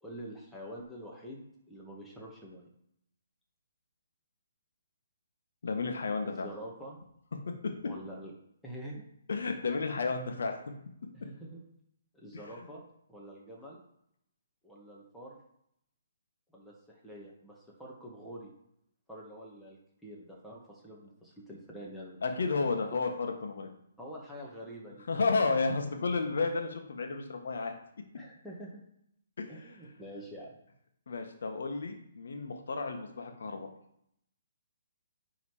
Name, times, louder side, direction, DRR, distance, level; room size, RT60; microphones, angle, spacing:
voice 1, 0.0-2.7 6.2-7.0 7.8-8.3 8.6-9.0 11.1-11.6 12.1-12.8 13.1-13.8 14.6-15.4 16.5-18.5 19.1-22.6 22.9-23.0 24.0-25.0 28.1-28.8 29.5-30.5, equal, ahead, -5 dB, 1.9 m, -46 dB
voice 2, 5.6-6.5 7.6-7.9 9.3-10.5 22.2-23.7 25.1-27.7 29.4-29.5 31.1-33.7, left 4 dB, 65° left, 4 dB, 1.6 m, -32 dB
10.0 x 3.8 x 5.0 m, 0.74 s
figure-of-eight pair, 140°, 0 cm